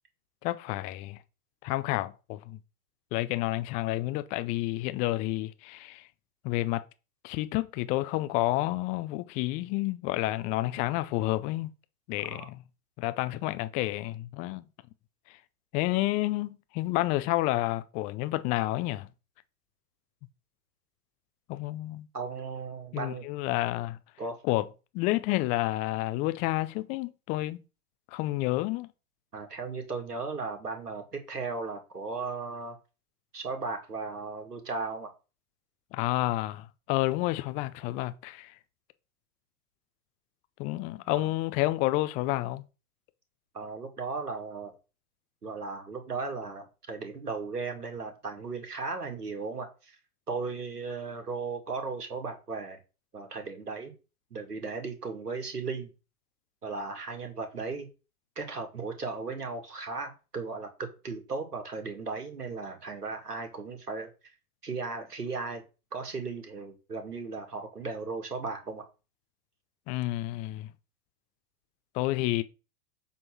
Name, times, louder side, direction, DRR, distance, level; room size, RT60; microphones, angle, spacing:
voice 1, 0.4-1.2 1.6-2.6 3.1-6.0 6.4-6.8 7.2-11.7 12.1-12.6 13.0-14.6 15.7-19.1 21.5-22.1 22.9-24.0 24.4-24.7 24.9-27.6 28.1-28.9 35.9-38.5 40.6-42.6 69.9-70.7 71.9-72.4, left 17 dB, 20° left, 0.3 m, -30 dB
voice 2, 22.1-23.3 24.2-24.4 29.3-32.8 33.3-35.1 41.1-41.3 43.5-44.7 45.4-50.0 50.3-52.8 53.1-53.9 54.3-55.9 56.6-57.9 58.4-64.1 64.6-65.6 65.9-68.8, right 4 dB, 90° right, 2.4 m, -36 dB
7.8 x 3.7 x 6.1 m
hypercardioid pair, 100°, 46 cm